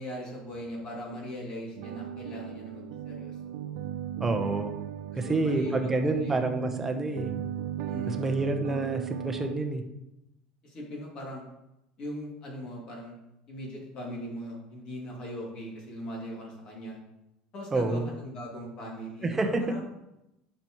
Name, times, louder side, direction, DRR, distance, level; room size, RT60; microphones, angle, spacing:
voice 1, 0.0-3.3 5.1-6.4 7.9-8.5 10.6-11.4 12.0-13.1 13.5-17.0 17.5-19.8, equal, 40° left, -2 dB, 2.5 m, -39 dB
sound 1, 1.8-9.5, right 10 dB, 70° right, 0.5 m, -37 dB
voice 2, 4.2-4.7 5.1-7.3 8.1-9.8 17.7-18.0 19.2-19.7, right 2 dB, 15° right, 4 dB, 0.9 m, -28 dB
10.0 x 5.7 x 3.1 m, 0.89 s
supercardioid pair, 135°, 2 cm